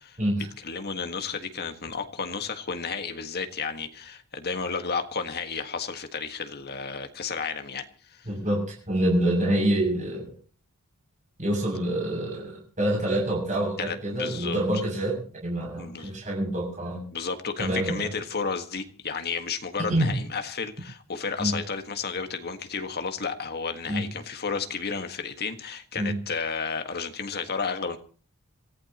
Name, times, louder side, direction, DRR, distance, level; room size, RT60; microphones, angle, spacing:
voice 1, 0.0-8.3 13.8-14.6 15.8-16.2 17.1-28.0, left 5 dB, 45° left, 7 dB, 1.7 m, -32 dB
voice 2, 8.3-10.2 11.4-17.1 17.6-18.1 19.9-20.1 21.4-21.5 23.9-24.0 26.0-26.2, right 1 dB, 35° right, -1 dB, 7.1 m, -26 dB
27.0 x 15.0 x 3.0 m, 0.39 s
head